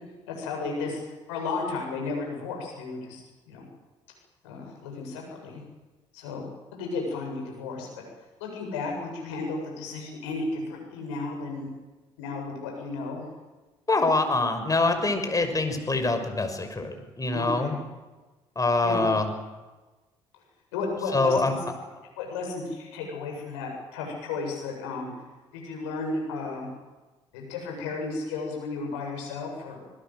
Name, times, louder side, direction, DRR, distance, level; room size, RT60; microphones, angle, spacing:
voice 1, 0.3-1.0 1.3-3.2 3.5-3.7 4.4-5.6 6.1-7.9 8.4-11.7 12.2-13.3 17.3-17.7 18.8-19.1 20.7-21.6 22.2-25.1 25.5-26.7 27.3-29.8, left 3 dB, 80° left, 1 dB, 7.8 m, -33 dB
voice 2, 13.9-17.7 18.6-19.3 21.1-21.5, left 3 dB, 25° left, 7 dB, 6.0 m, -24 dB
26.5 x 20.0 x 8.0 m, 1.2 s
hypercardioid pair, 50°, 15 cm